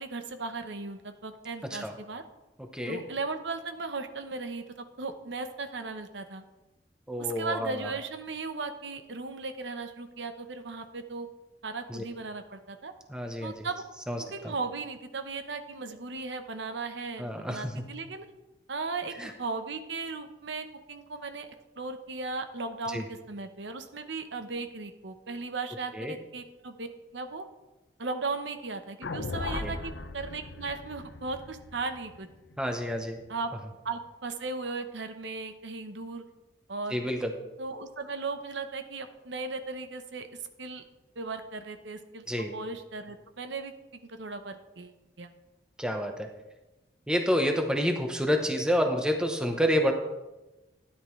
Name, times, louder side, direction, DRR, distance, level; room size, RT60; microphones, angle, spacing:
voice 1, 0.0-2.2 2.9-6.4 7.2-11.3 11.6-12.9 13.4-13.8 14.3-18.2 18.7-21.5 21.8-26.9 27.1-27.4 28.0-32.3 33.3-33.5 33.8-36.2 36.7-37.0 37.6-40.3 40.6-40.8 41.2-42.2 42.5-45.3, right 3 dB, 85° right, 8 dB, 0.9 m, -37 dB
voice 2, 7.1-7.9 11.9-12.0 13.1-13.5 14.1-14.2 14.4-14.5 17.2-17.8 19.2-19.3 22.9-23.0 26.0-26.1 29.6-29.7 32.6-33.2 36.9-37.3 42.3-42.5 45.8-46.3 47.1-49.9, equal, 5° right, 4 dB, 0.9 m, -28 dB
sound 1, 29.0-33.3, left 3 dB, 85° left, 0.7 m, -38 dB
12.5 x 10.0 x 3.2 m, 1.1 s
head